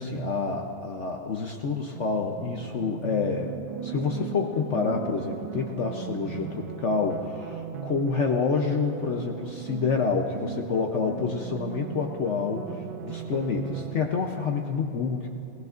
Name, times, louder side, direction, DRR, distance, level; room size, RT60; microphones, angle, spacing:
voice 1, 0.0-3.5 3.8-15.3, left 5 dB, 70° left, 2 dB, 0.6 m, -28 dB
sound 1, 1.9-14.0, right 9 dB, 80° right, 1.4 m, -37 dB
21.0 x 16.5 x 2.5 m, 2.9 s
omnidirectional pair, 2.2 m